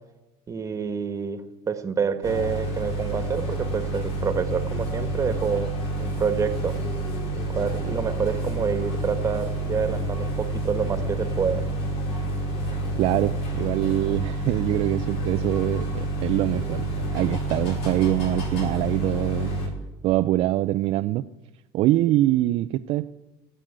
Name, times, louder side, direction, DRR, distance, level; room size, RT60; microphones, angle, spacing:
voice 1, 0.5-5.7 6.0-6.7 7.3-11.6, right 6 dB, 30° right, 9 dB, 1.7 m, -27 dB
sound 1, 2.2-19.7, right 1 dB, 65° left, 5.1 m, -28 dB
voice 2, 13.0-19.5 20.0-21.3 21.7-23.1, right 15 dB, 60° right, 9 dB, 0.5 m, -24 dB
18.0 x 7.8 x 9.2 m, 1.1 s
supercardioid pair, 100°, 11 cm